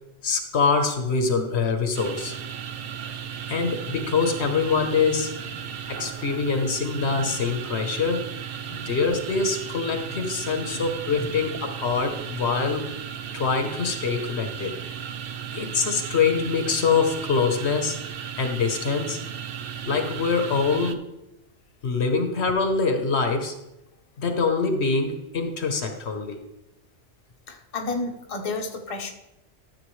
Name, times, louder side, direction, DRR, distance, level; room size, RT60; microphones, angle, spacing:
voice 1, 0.2-2.3 3.5-5.3 5.9-8.3 8.9-14.7 15.5-18.0 18.4-19.2 19.9-21.0 21.8-23.5 24.2-26.4, left 4 dB, 65° left, 5 dB, 1.2 m, -24 dB
sound 1, 1.9-20.9, right 8 dB, 60° right, 0.7 m, -35 dB
voice 2, 5.5-5.8 8.6-8.9 10.6-11.4 14.6-14.7 27.5-29.1, left 3 dB, 35° left, 2 dB, 0.9 m, -34 dB
13.0 x 7.0 x 3.1 m, 0.90 s
omnidirectional pair, 1.2 m